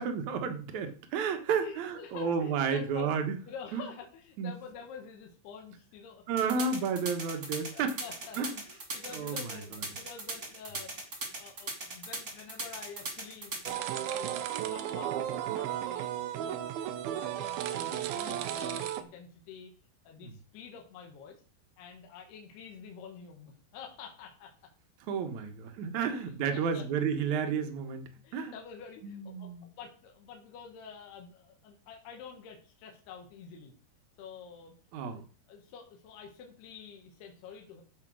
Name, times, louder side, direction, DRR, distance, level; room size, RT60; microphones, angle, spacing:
voice 1, 0.0-3.4 3.7-3.9 4.4-4.5 6.3-7.9 8.4-8.5 9.1-9.6 20.2-20.3 25.1-28.5 29.0-29.7 34.9-35.2, right 6 dB, 65° right, 7 dB, 1.9 m, -32 dB
voice 2, 1.6-3.1 3.5-6.8 7.7-8.4 8.6-14.3 14.7-16.1 16.4-19.7 20.1-21.4 21.8-24.5 26.0-26.9 28.2-33.7 34.2-34.8 35.1-37.8, left 6 dB, 65° left, 1 dB, 3.6 m, -48 dB
sound 1, 6.4-13.7, right 3 dB, 30° right, 1.7 m, -38 dB
sound 2, 13.7-19.0, right 11 dB, 80° right, 2.2 m, -34 dB
14.0 x 5.2 x 6.3 m, 0.39 s
omnidirectional pair, 5.3 m